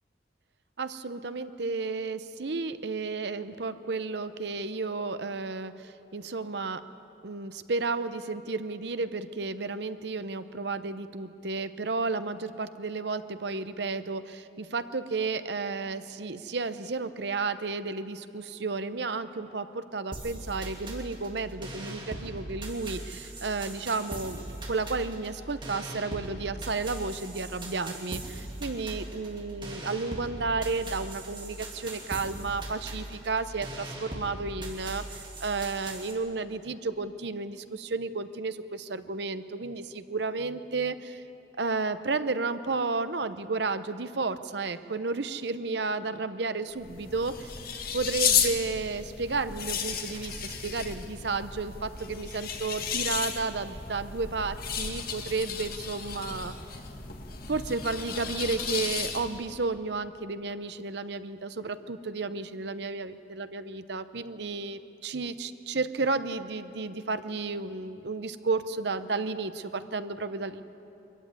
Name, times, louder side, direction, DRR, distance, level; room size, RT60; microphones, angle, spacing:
voice 1, 0.8-6.8 7.2-41.2 41.6-47.6 47.9-56.5 57.5-70.6, right 3 dB, 60° right, 12 dB, 0.8 m, -32 dB
sound 1, 20.1-36.1, right 1 dB, 25° right, 2.7 m, -40 dB
sound 2, 46.7-59.5, left 7 dB, 50° left, 1.6 m, -33 dB
23.5 x 14.5 x 9.6 m, 3.0 s
head